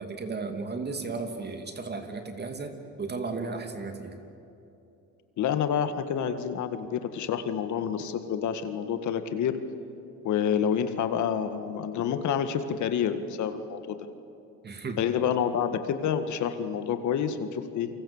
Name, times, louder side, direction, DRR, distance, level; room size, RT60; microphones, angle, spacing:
voice 1, 0.0-4.2 14.6-15.0, right 4 dB, 30° right, 5 dB, 2.8 m, -35 dB
voice 2, 5.4-9.5 10.2-14.0 15.0-17.9, left 8 dB, 60° left, 9 dB, 1.9 m, -28 dB
29.0 x 24.0 x 7.3 m, 2.8 s
supercardioid pair, 85°, 33 cm